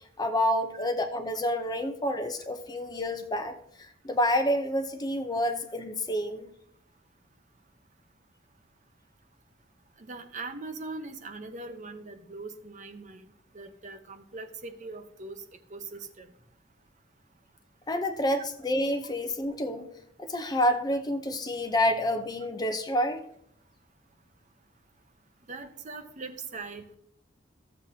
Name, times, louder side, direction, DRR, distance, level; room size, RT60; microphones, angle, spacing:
voice 1, 0.0-6.5 17.9-19.9 20.2-23.2, left 1 dB, 20° left, 6 dB, 0.7 m, -28 dB
voice 2, 10.0-13.2 13.5-15.4 15.7-16.3 25.5-27.0, right 3 dB, 40° right, 7 dB, 0.8 m, -41 dB
14.5 x 7.6 x 2.8 m, 0.72 s
head